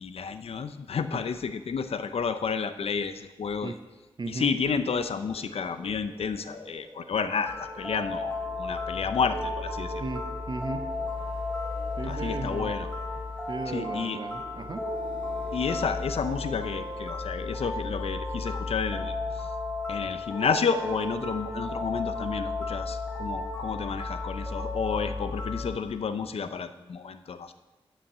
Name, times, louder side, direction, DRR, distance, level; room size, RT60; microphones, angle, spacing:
voice 1, 0.0-3.7 4.3-8.3 8.6-10.0 12.0-12.9 13.7-14.2 15.5-19.5 19.9-27.5, left 6 dB, 75° left, 10 dB, 0.6 m, -31 dB
voice 2, 4.2-4.5 10.0-10.9 12.0-12.7 13.5-14.9, right 3 dB, 45° right, 7 dB, 0.6 m, -35 dB
sound 1, 4.6-17.4, equal, 30° right, 1.7 m, -51 dB
sound 2, 7.5-25.8, left 2 dB, 10° left, 3.7 m, -34 dB
9.9 x 5.7 x 7.5 m, 1.1 s
wide cardioid pair, 90°, 10 cm